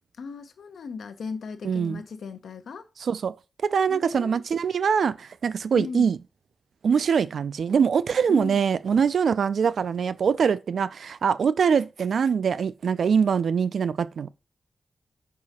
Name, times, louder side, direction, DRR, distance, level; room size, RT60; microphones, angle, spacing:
voice 1, 0.2-2.9 3.9-4.4 5.7-6.1 8.3-8.6, left 5 dB, 80° left, 0.7 m, -37 dB
voice 2, 1.6-2.0 3.0-3.3 3.6-6.2 6.8-14.3, right 6 dB, 70° right, 0.3 m, -23 dB
4.9 x 4.8 x 4.1 m
wide cardioid pair, 175°, 0 cm